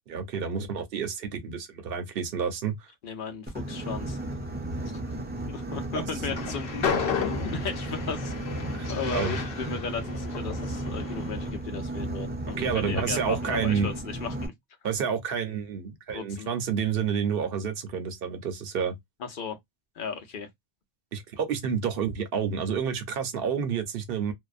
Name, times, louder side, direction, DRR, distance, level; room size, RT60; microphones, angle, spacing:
voice 1, 0.1-2.9 5.9-6.4 8.7-9.3 12.6-13.9 14.8-19.0 21.1-24.3, right 7 dB, 70° right, 0.9 m, -29 dB
voice 2, 3.0-4.2 4.9-5.0 5.5-6.8 7.2-8.3 8.9-14.5 16.1-16.5 19.2-19.6 19.9-20.5, left 5 dB, 60° left, 0.9 m, -36 dB
Boat Water vehicle, 3.5-14.5, right 1 dB, 10° right, 0.5 m, -34 dB
Train, 6.2-11.5, left 6 dB, 85° left, 0.9 m, -33 dB
2.6 x 2.1 x 2.4 m
omnidirectional pair, 1.0 m